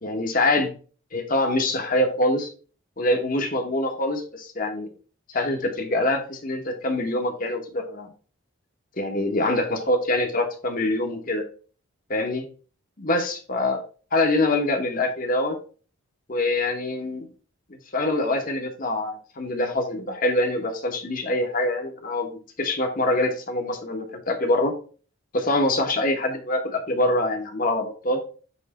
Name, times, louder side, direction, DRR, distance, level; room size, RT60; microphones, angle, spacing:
voice 1, 0.0-0.7 1.1-2.5 3.0-4.9 5.3-8.1 9.0-11.4 12.1-12.5 13.0-13.8 14.1-15.6 16.3-17.3 17.7-22.3 22.6-24.7 25.3-28.2, left 1 dB, 40° left, 4 dB, 1.1 m, -24 dB
7.2 x 3.3 x 4.2 m, 0.39 s
head